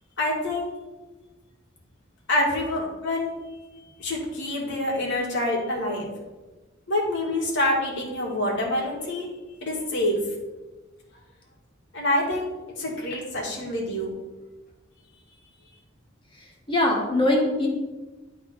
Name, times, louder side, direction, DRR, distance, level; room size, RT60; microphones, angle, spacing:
voice 1, 0.2-0.7 2.3-3.3 4.0-6.1 6.9-9.3 9.6-10.2 11.9-14.1, left 1 dB, 65° left, -3 dB, 2.1 m, -26 dB
voice 2, 16.4-17.7, left 1 dB, 25° left, -1 dB, 1.3 m, -23 dB
10.0 x 3.9 x 4.4 m, 1.2 s
head